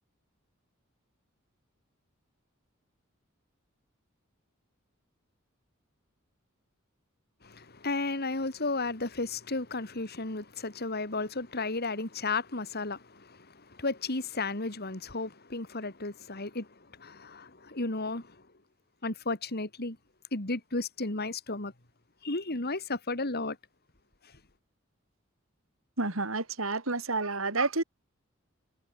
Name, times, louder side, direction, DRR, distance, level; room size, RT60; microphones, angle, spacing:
voice 1, 7.4-18.4 19.0-20.0 20.3-21.7 22.2-23.6, left 3 dB, 50° left, 3.1 m, -34 dB
voice 2, 26.0-27.8, right 3 dB, 75° right, 3.5 m, -29 dB
head